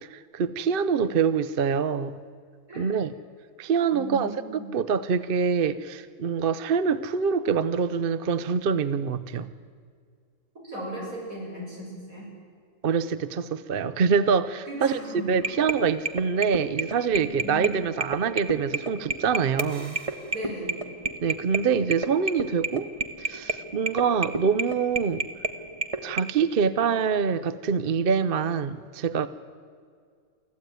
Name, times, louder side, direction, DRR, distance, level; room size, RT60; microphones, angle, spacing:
voice 1, 0.0-2.2 2.7-3.1 3.6-9.5 12.8-15.0 15.3-20.0 21.2-22.9 23.2-25.3 26.0-29.3, right 6 dB, 50° right, 0.8 m, -25 dB
voice 2, 3.9-4.7 10.6-12.3 14.7-15.8 17.2-18.0 20.3-20.8, right 1 dB, 75° right, 7.7 m, -37 dB
sound 1, 15.3-26.2, right 3 dB, 25° right, 1.1 m, -31 dB
24.5 x 15.0 x 9.3 m
omnidirectional pair, 1.5 m